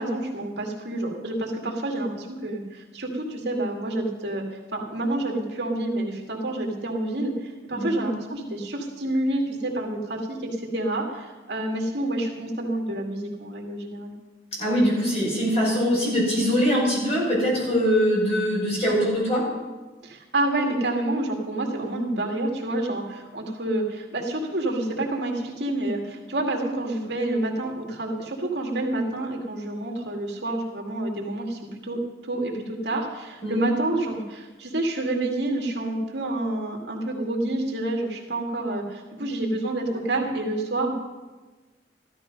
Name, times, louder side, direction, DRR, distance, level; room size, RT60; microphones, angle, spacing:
voice 1, 0.0-4.4 4.7-14.1 20.0-40.9, right 1 dB, 70° right, 1 dB, 2.2 m, -28 dB
voice 2, 7.7-8.0 14.6-19.4 33.4-33.6, equal, 35° left, -4 dB, 6.0 m, -22 dB
14.0 x 13.0 x 5.3 m, 1.2 s
head